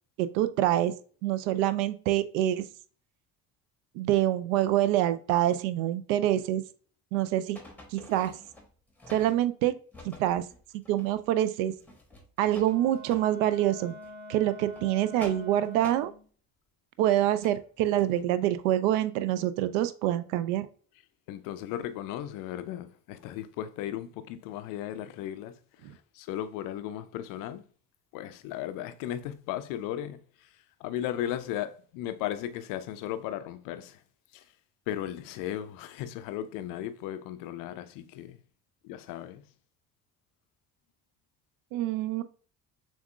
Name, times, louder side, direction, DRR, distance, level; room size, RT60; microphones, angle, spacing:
voice 1, 0.2-0.9 1.2-2.7 4.0-6.6 7.1-7.6 7.9-8.3 9.1-9.8 10.0-10.4 10.9-11.7 12.4-13.9 14.3-16.1 17.0-20.7 25.8-25.9 41.7-42.2, right 13 dB, 55° right, 0.5 m, -26 dB
sound 1, 7.6-9.4 9.9-11.3 11.6-13.3 13.9-14.1 14.5-16.0 17.4-18.3 18.5-18.6, left 2 dB, 5° left, 1.1 m, -48 dB
Wind instrument woodwind instrument, 12.6-16.3, left 1 dB, 20° right, 1.3 m, -46 dB
voice 2, 21.3-25.5 25.8-27.6 28.1-30.5 30.8-34.0 34.3-34.4 34.9-38.4 38.8-39.4, left 11 dB, 45° left, 0.4 m, -36 dB
6.9 x 2.6 x 2.3 m
figure-of-eight pair, 55°, 47 cm